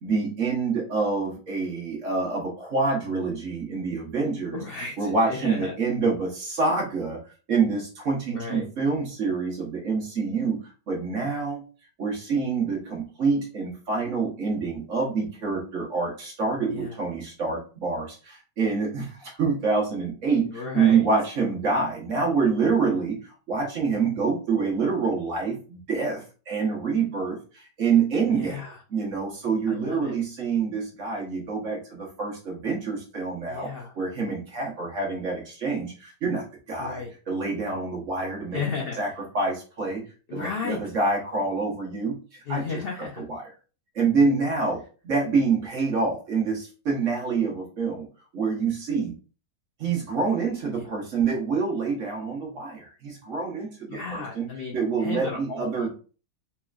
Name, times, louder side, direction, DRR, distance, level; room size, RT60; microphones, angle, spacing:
voice 1, 0.0-4.6 5.0-7.2 7.5-10.6 10.9-11.6 12.0-23.2 23.5-28.6 28.9-33.7 33.9-38.6 39.0-39.1 39.3-40.0 40.3-42.2 42.5-42.7 43.2-43.4 43.9-48.1 48.3-49.1 49.8-54.5 54.7-55.9, right 4 dB, 50° right, -2 dB, 1.5 m, -26 dB
voice 2, 4.5-5.7 8.3-8.7 16.7-17.0 20.4-21.0 28.3-28.8 29.7-30.1 33.5-33.9 36.8-37.1 38.5-39.0 40.3-40.9 42.5-43.2 50.7-50.8 53.9-55.9, left 5 dB, 80° left, 0 dB, 0.5 m, -34 dB
4.3 x 2.9 x 2.4 m, 0.37 s
omnidirectional pair, 1.8 m